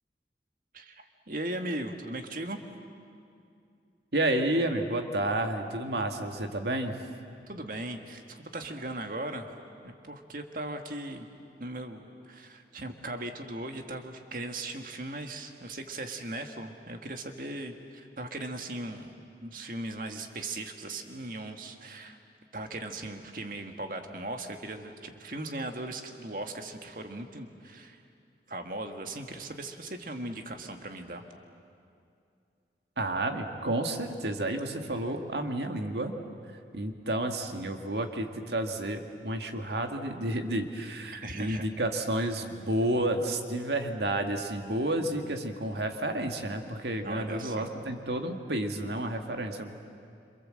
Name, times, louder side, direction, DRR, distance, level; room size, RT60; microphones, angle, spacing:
voice 1, 0.7-2.6 7.5-9.5 9.8-11.3 11.6-19.1 19.4-22.2 22.5-28.0 28.5-31.2 41.2-41.7 47.0-47.7, right 2 dB, 50° right, 5 dB, 1.8 m, -38 dB
voice 2, 4.1-7.0 33.0-36.1 36.7-49.7, right 1 dB, 75° right, 4 dB, 2.0 m, -31 dB
27.0 x 26.5 x 7.8 m, 2.5 s
head